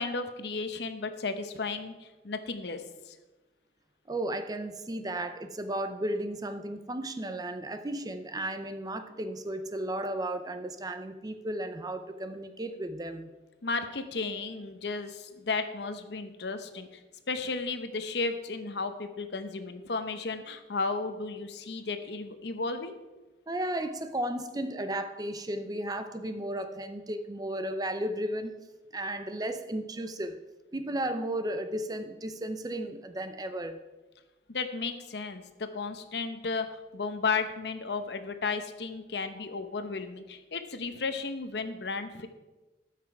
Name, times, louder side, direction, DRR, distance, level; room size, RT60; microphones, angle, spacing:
voice 1, 0.0-3.2 13.6-17.0 17.3-23.0 34.5-42.3, left 4 dB, 70° left, 9 dB, 0.8 m, -34 dB
voice 2, 4.1-13.3 23.5-28.5 28.9-30.4 30.7-33.8, right 1 dB, 20° right, 9 dB, 0.6 m, -34 dB
13.5 x 6.0 x 4.6 m, 1.1 s
head